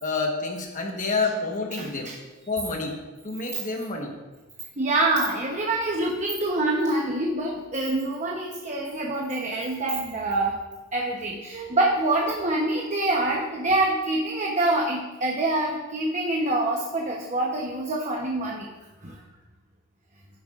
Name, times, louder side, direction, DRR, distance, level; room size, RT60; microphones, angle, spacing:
voice 1, 0.0-2.1 2.5-2.9 3.2-4.1, left 3 dB, 35° left, 1 dB, 1.2 m, -28 dB
voice 2, 1.7-2.2 4.8-10.5 10.9-18.7 19.0-19.2, right 2 dB, 35° right, -2 dB, 0.9 m, -26 dB
15.5 x 7.9 x 2.5 m, 1.2 s
head